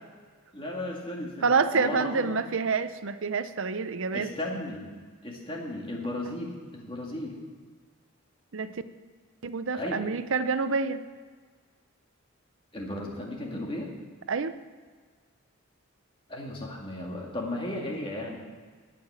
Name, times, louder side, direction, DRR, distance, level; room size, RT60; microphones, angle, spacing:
voice 1, 0.5-2.4 4.1-4.9 5.2-7.4 9.7-10.0 12.7-13.9 16.3-18.4, left 1 dB, 25° left, -1 dB, 2.1 m, -35 dB
voice 2, 1.4-4.3 8.5-8.7 9.4-11.0 14.3-14.5, right 4 dB, 65° right, 12 dB, 0.6 m, -27 dB
18.0 x 6.0 x 7.4 m, 1.5 s
head